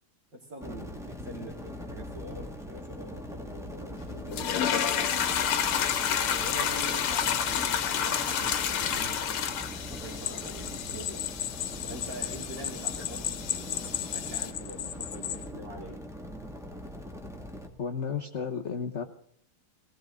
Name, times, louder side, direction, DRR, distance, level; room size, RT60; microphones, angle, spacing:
voice 1, 0.3-5.4 6.1-9.4 9.9-11.3 11.9-16.0, right 1 dB, 55° right, -3 dB, 4.0 m, -45 dB
sound 1, 0.6-17.7, equal, ahead, 1.6 m, -41 dB
sound 2, 4.3-14.5, left 8 dB, 85° left, 2.0 m, -30 dB
sound 3, 10.2-15.5, left 11 dB, 65° left, 1.3 m, -35 dB
voice 2, 17.8-19.0, left 6 dB, 40° left, 5 dB, 1.1 m, -33 dB
19.0 x 18.5 x 3.7 m, 0.64 s
omnidirectional pair, 2.3 m